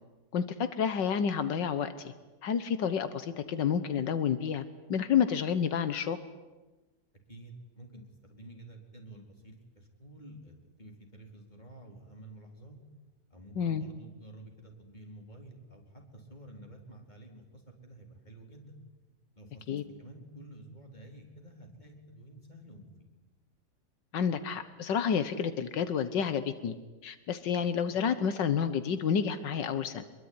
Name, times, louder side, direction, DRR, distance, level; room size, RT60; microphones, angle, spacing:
voice 1, 0.3-2.1 2.4-4.6 4.9-6.2 13.6-13.8 19.7-19.8 24.1-26.8 27.0-30.0, left 7 dB, 85° left, 11 dB, 1.8 m, -29 dB
voice 2, 7.3-12.8 13.3-18.7 19.4-23.1 27.5-27.6, right 1 dB, 25° left, 2 dB, 4.5 m, -50 dB
26.0 x 22.0 x 9.8 m, 1.2 s
omnidirectional pair, 1.9 m